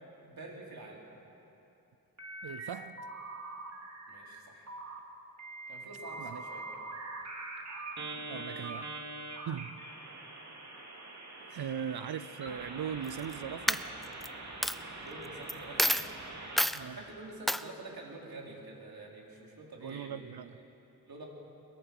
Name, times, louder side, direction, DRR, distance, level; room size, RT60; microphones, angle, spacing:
voice 1, 0.2-1.0 4.1-4.7 5.7-6.6 8.0-8.1 8.5-8.7 11.4-11.5 15.0-15.9 16.8-20.4 21.1-21.2, right 2 dB, 70° right, -2 dB, 4.1 m, -47 dB
sound 1, 2.2-2.7 3.0-4.4 4.7-5.0 5.4-16.7, right 2 dB, 45° right, 2.7 m, -44 dB
voice 2, 2.4-3.1 6.2-6.4 7.8-7.9 8.3-8.9 9.5-9.8 11.5-13.8 16.7-17.0 19.8-20.6, right 8 dB, 85° right, 13 dB, 0.6 m, -39 dB
Coin (dropping), 13.0-13.3 13.7-14.3 14.6-14.8 15.5-15.6 15.8-16.1 16.6-16.8 17.5-17.6, equal, ahead, 0.4 m, -28 dB
22.5 x 22.0 x 6.1 m, 2.9 s
wide cardioid pair, 125°, 37 cm